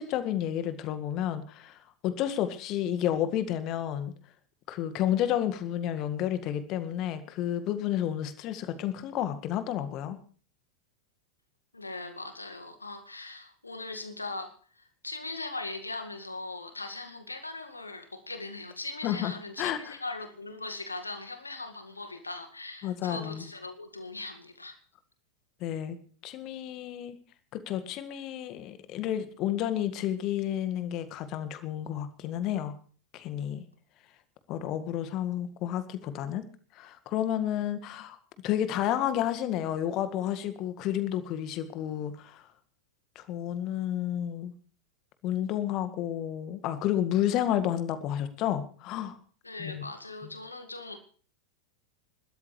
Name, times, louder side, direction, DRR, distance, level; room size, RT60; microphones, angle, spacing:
voice 1, 0.0-4.1 4.7-10.2 19.0-19.3 19.6-20.0 22.8-23.4 25.6-26.0 26.2-27.2 27.5-32.7 33.1-33.6 34.5-36.4 36.7-38.2 38.4-42.4 43.1-44.5 45.2-49.2 49.6-49.8 50.2-50.3, left 11 dB, 40° left, 1.9 m, -31 dB
voice 2, 11.7-24.8 49.4-51.0, left 2 dB, 80° left, 1.9 m, -40 dB
27.5 x 13.0 x 3.3 m
figure-of-eight pair, 90°, 0 cm